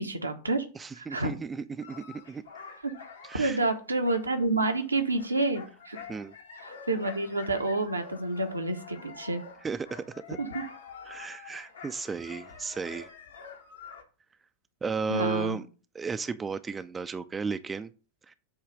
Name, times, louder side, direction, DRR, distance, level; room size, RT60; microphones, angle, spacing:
voice 1, 0.0-0.6 0.9-1.3 2.8-2.9 3.3-6.0 6.6-9.4 10.4-10.6 15.1-15.6, right 2 dB, 80° right, 1.0 m, -29 dB
voice 2, 0.8-2.4 3.2-3.6 6.1-6.3 9.6-10.4 11.1-13.1 14.8-15.6 15.9-17.9 18.3-18.4, right 5 dB, 15° right, 0.4 m, -34 dB
sound 1, 1.8-14.0, left 6 dB, 70° left, 1.4 m, -47 dB
7.8 x 3.2 x 6.1 m
figure-of-eight pair, 90°, 0 cm